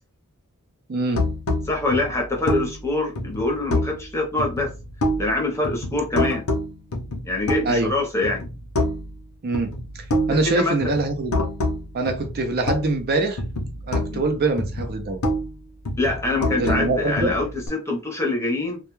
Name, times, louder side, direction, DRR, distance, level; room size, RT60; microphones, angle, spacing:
voice 1, 0.9-1.3 7.6-7.9 9.4-11.4 11.9-13.4 13.9-15.2 16.5-17.4, right 2 dB, 45° right, 0.5 m, -24 dB
sound 1, 1.1-4.1 4.4-5.4 5.6-7.9 8.2-9.2 9.5-13.1 13.4-15.5 15.8-17.7, left 1 dB, 65° left, 0.6 m, -27 dB
voice 2, 1.7-4.7 5.2-6.4 7.2-8.5 10.3-10.9 14.1-14.2 16.0-18.8, left 2 dB, 10° left, 0.7 m, -25 dB
2.2 x 2.2 x 3.0 m
head